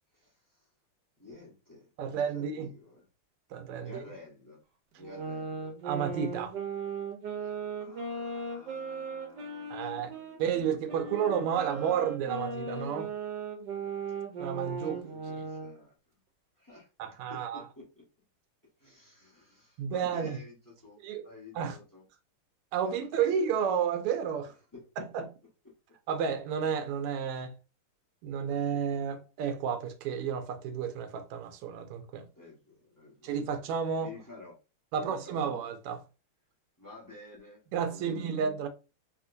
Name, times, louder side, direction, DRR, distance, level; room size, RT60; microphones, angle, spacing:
voice 1, 0.1-0.7 1.2-3.1 3.8-4.6 4.9-5.8 7.4-12.0 14.5-16.2 16.5-16.9 17.3-18.0 18.8-22.0 22.8-23.8 24.7-25.0 32.3-33.5 34.0-34.6 34.9-35.5 36.8-38.4, left 3 dB, 25° left, 0.4 m, -52 dB
voice 2, 2.0-2.7 3.5-4.0 5.8-6.5 9.7-10.1 10.4-13.1 14.4-15.0 17.0-17.6 19.8-20.4 21.0-21.2 21.5-21.8 22.7-24.5 25.0-25.3 26.1-27.5 28.2-32.3 33.2-34.1 34.9-36.0 37.7-38.7, right 7 dB, 90° right, 1.5 m, -31 dB
sound 1, 5.0-10.4 10.9-15.8, right 4 dB, 65° right, 1.1 m, -37 dB
3.5 x 2.8 x 2.5 m
omnidirectional pair, 2.4 m